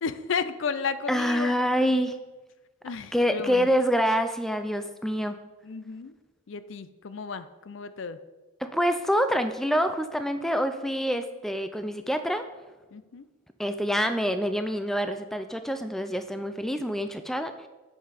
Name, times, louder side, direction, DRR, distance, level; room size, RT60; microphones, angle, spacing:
voice 1, 0.0-1.5 2.8-3.7 5.6-6.1 6.5-8.2 12.9-13.2, left 5 dB, 65° left, 13 dB, 0.5 m, -33 dB
voice 2, 1.1-2.2 3.1-5.4 8.6-12.4 13.6-17.7, equal, ahead, 9 dB, 0.3 m, -26 dB
8.0 x 5.7 x 5.0 m, 1.2 s
head